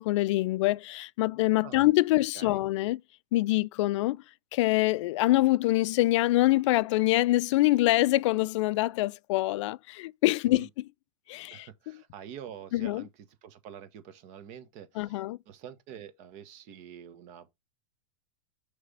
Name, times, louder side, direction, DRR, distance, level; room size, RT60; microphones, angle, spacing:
voice 1, 0.0-3.0 3.3-4.2 4.5-10.7 11.3-11.7 12.7-13.0 15.0-15.4, left 18 dB, 60° left, 0.4 m, -25 dB
voice 2, 11.5-17.5, right 9 dB, 45° right, 1.3 m, -46 dB
6.4 x 3.4 x 5.4 m
hypercardioid pair, 125°, 18 cm